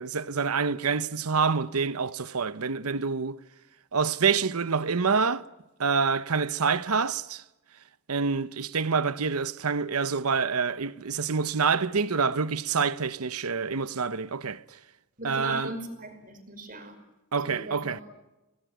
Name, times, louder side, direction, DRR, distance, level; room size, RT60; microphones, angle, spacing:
voice 1, 0.0-3.4 3.9-5.4 5.8-7.4 8.1-14.6 15.2-15.7 17.3-18.0, right 5 dB, 85° right, 0.9 m, -27 dB
voice 2, 15.2-16.9 17.4-18.0, right 2 dB, 40° right, 5.4 m, -38 dB
29.0 x 20.0 x 9.4 m
head